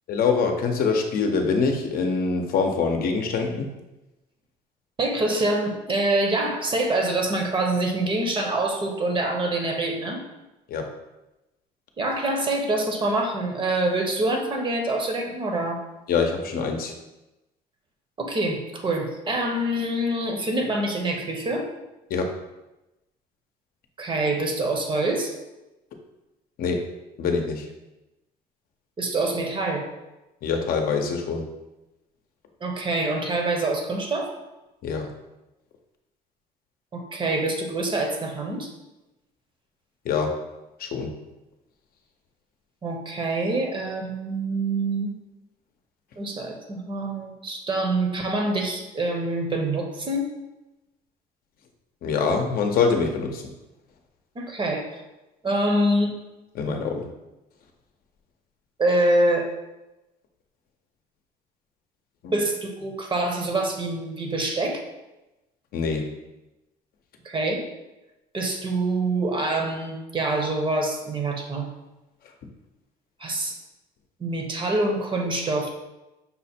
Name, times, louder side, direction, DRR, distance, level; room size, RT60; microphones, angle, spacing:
voice 1, 0.1-3.7 10.7-10.9 16.1-16.9 22.1-22.3 26.6-26.8 27.2-27.7 30.4-31.5 34.8-35.1 40.0-40.3 40.8-41.1 52.0-53.5 56.5-57.1 62.2-62.4 65.7-66.1, left 5 dB, 60° left, 3 dB, 0.7 m, -24 dB
voice 2, 5.0-10.2 12.0-15.8 18.2-21.7 24.0-25.3 29.0-29.9 32.6-34.3 36.9-38.7 42.8-45.1 46.2-50.3 54.3-55.0 55.4-56.1 56.7-56.8 58.8-59.5 62.3-64.8 67.2-67.6 68.3-71.7 73.2-73.5 74.2-75.7, right 2 dB, 30° right, 2 dB, 0.8 m, -25 dB
5.6 x 2.1 x 4.2 m, 1.0 s
cardioid pair, 110°, 17 cm